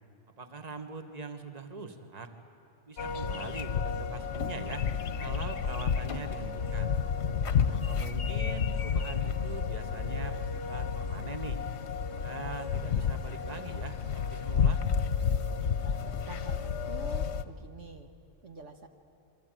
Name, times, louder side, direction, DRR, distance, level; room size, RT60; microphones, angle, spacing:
voice 1, 0.4-2.3 2.9-4.9 5.2-6.9 7.7-11.6 12.2-14.8, right 4 dB, 30° right, 7 dB, 1.6 m, -42 dB
sound 1, 3.0-17.4, left 6 dB, 60° left, 1.1 m, -31 dB
voice 2, 15.8-18.1 18.4-18.9, right 2 dB, 65° right, 5 dB, 1.6 m, -47 dB
26.5 x 24.5 x 9.1 m, 2.5 s
omnidirectional pair, 1.4 m